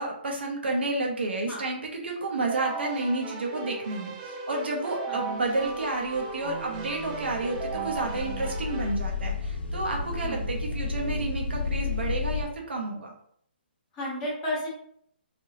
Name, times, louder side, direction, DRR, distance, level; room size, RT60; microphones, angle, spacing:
voice 1, 0.0-4.1 4.5-13.1, right 2 dB, 85° right, 0 dB, 0.8 m, -30 dB
Keyboard (musical), 2.4-8.9, right 5 dB, 25° right, 0.4 m, -36 dB
sound 1, 5.6-12.4, left 4 dB, 85° left, 1.0 m, -32 dB
voice 2, 10.2-10.6 13.9-14.7, left 1 dB, 20° left, -5 dB, 1.1 m, -33 dB
3.3 x 2.6 x 2.8 m, 0.66 s
hypercardioid pair, 155°, 6 cm